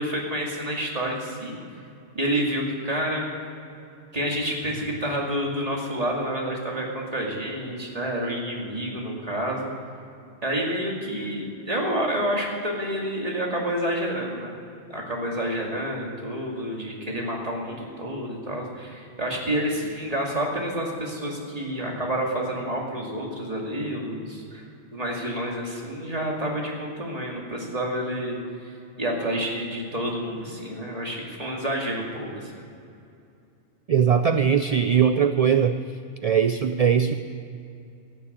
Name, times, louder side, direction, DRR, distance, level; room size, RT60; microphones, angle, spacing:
voice 1, 0.0-1.6 2.1-3.3 4.1-9.7 10.4-14.6 14.9-24.6 24.9-28.7 29.0-32.6, equal, 30° right, -2 dB, 2.4 m, -29 dB
voice 2, 33.9-35.8 36.2-37.1, right 7 dB, 60° right, 9 dB, 0.4 m, -20 dB
16.0 x 7.0 x 8.5 m, 2.6 s
omnidirectional pair, 1.2 m